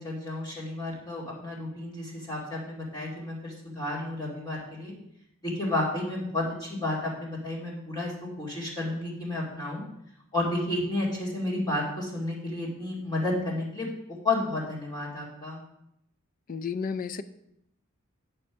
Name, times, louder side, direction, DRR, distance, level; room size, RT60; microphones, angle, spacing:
voice 1, 0.0-4.9 5.4-8.1 8.4-9.8 10.3-13.9 14.2-15.6, left 2 dB, 20° left, -6 dB, 2.3 m, -31 dB
voice 2, 16.5-17.2, left 5 dB, 40° left, 13 dB, 0.4 m, -32 dB
9.7 x 5.6 x 4.6 m, 0.78 s
head